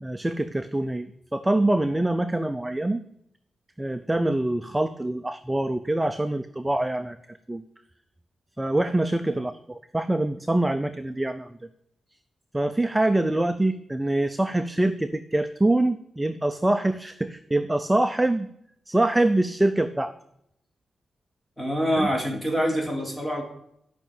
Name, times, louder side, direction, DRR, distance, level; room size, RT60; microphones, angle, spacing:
voice 1, 0.0-3.0 3.8-7.6 8.6-11.6 12.5-18.5 18.9-20.2 22.0-22.1, right 1 dB, 10° right, 9 dB, 0.6 m, -25 dB
voice 2, 21.6-23.4, equal, 5° left, 0 dB, 3.3 m, -26 dB
13.5 x 6.0 x 8.9 m, 0.75 s
wide cardioid pair, 120°, 0 cm